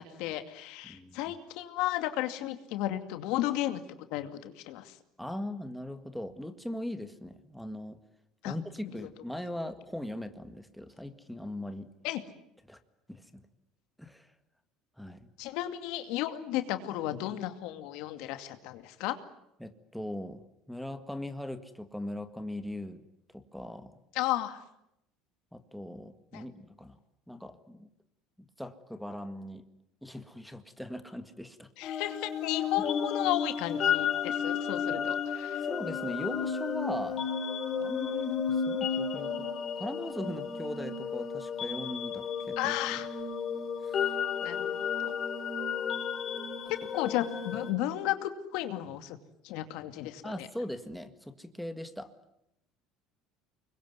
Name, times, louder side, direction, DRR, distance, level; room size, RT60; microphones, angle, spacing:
voice 1, 0.0-3.8 4.1-5.0 8.4-8.5 8.9-9.1 12.0-12.2 15.4-19.2 24.1-24.6 26.3-26.4 31.8-35.6 42.6-43.1 44.4-45.1 46.7-49.2 49.4-50.5, left 14 dB, 70° left, 9 dB, 2.4 m, -34 dB
voice 2, 0.8-1.3 5.2-8.0 8.5-11.9 12.7-12.8 13.1-13.4 14.0-14.3 15.0-15.3 19.6-20.4 20.7-23.0 23.3-23.9 25.5-27.0 27.3-27.9 28.6-29.6 30.0-31.7 34.9-35.1 35.6-37.2 37.8-39.3 39.8-43.0 43.8-44.1 50.2-52.1, left 1 dB, ahead, 7 dB, 1.8 m, -40 dB
sound 1, 31.8-47.7, left 7 dB, 40° left, 3.6 m, -33 dB
25.0 x 22.0 x 9.6 m, 0.81 s
supercardioid pair, 120°, 0 cm